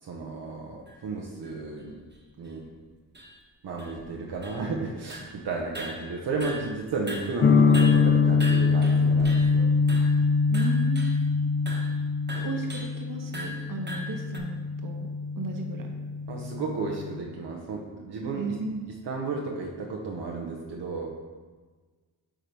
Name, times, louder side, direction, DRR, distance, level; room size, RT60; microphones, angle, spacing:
voice 1, 0.0-2.0 2.4-2.6 3.6-9.7 16.3-18.5 19.0-21.1, right 3 dB, 70° right, -1 dB, 0.9 m, -33 dB
sound 1, 0.9-1.0 1.4-1.5 2.1-2.2 2.4-2.5 3.1-3.4 3.8-4.8 5.1-5.4 5.7-6.8 7.1-9.6 9.9-10.2 10.5-11.2 11.7-11.9 12.3-13.0 13.3-14.4, right 1 dB, 25° right, 1.2 m, -40 dB
sound 2, 7.4-17.2, left 4 dB, 30° left, 0.5 m, -24 dB
voice 2, 10.5-11.3 12.3-15.1 15.4-15.9 18.4-18.8, right 3 dB, 50° right, 3 dB, 1.1 m, -35 dB
9.0 x 3.8 x 3.3 m, 1.4 s
cardioid pair, 55°, 42 cm